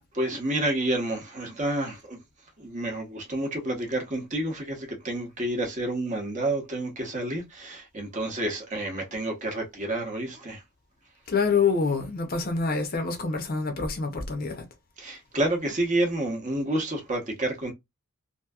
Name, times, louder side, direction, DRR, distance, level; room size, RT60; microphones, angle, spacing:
voice 1, 0.1-2.2 2.6-10.6 15.0-17.7, right 1 dB, 35° right, 0.8 m, -29 dB
voice 2, 11.3-14.7, left 4 dB, 40° left, 0.6 m, -26 dB
2.8 x 2.6 x 2.3 m
head